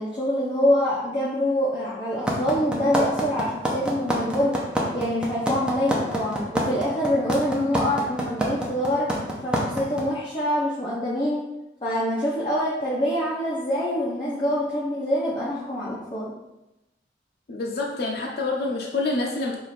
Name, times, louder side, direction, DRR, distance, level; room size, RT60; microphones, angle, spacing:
voice 1, 0.0-4.5 4.9-9.1 9.4-11.4 11.8-16.3, equal, 30° left, -8 dB, 0.8 m, -25 dB
sound 1, 2.3-10.0, right 1 dB, 5° right, 0.7 m, -25 dB
voice 2, 17.5-19.6, left 3 dB, 60° left, -2 dB, 0.5 m, -27 dB
4.7 x 2.5 x 4.2 m, 0.95 s
head